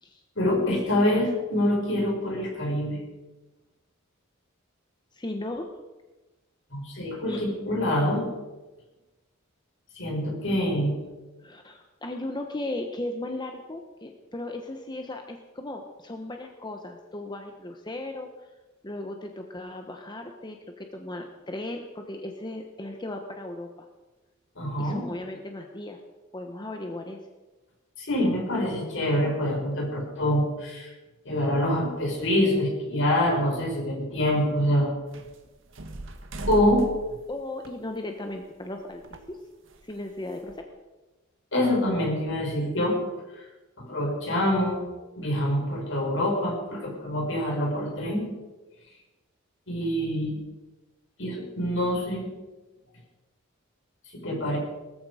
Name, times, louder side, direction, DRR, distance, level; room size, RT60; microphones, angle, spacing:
voice 1, 0.4-3.0 6.7-8.3 10.0-11.0 24.6-25.0 28.0-30.9 31.2-34.9 36.5-36.8 41.5-43.0 43.4-43.5 43.8-44.8 45.1-48.3 49.7-50.4 51.2-52.3 54.1-54.6, left 1 dB, 65° left, -1 dB, 6.0 m, -25 dB
voice 2, 5.1-5.7 7.3-7.4 11.4-18.3 18.8-23.9 24.8-26.0 26.3-27.2 37.3-39.4 39.8-40.7, left 1 dB, 20° left, 4 dB, 1.1 m, -36 dB
sound 1, 35.1-38.6 38.9-40.6, right 1 dB, 65° right, 1.8 m, -39 dB
19.5 x 14.0 x 5.0 m, 1.1 s
head